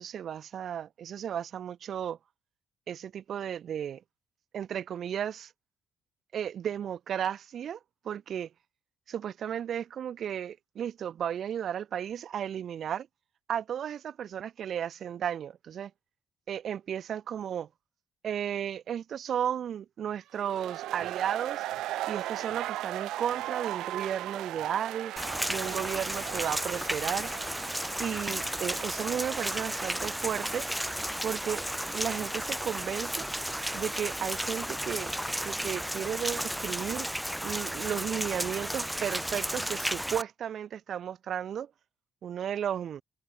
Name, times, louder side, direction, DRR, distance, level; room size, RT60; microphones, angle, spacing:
voice 1, 0.0-2.2 2.9-4.0 4.5-5.5 6.3-8.5 9.1-13.1 13.5-15.9 16.5-17.7 18.2-21.6 22.1-27.3 28.0-30.7 31.2-31.6 31.9-33.3 33.7-35.1 35.4-37.1 37.4-41.7 42.2-43.0, right 9 dB, 45° right, 1.0 m, -34 dB
sound 1, 20.4-32.0, right 15 dB, 80° right, 2.9 m, -38 dB
Rain, 25.2-40.2, equal, ahead, 0.5 m, -33 dB
cardioid pair, 155°, 0 cm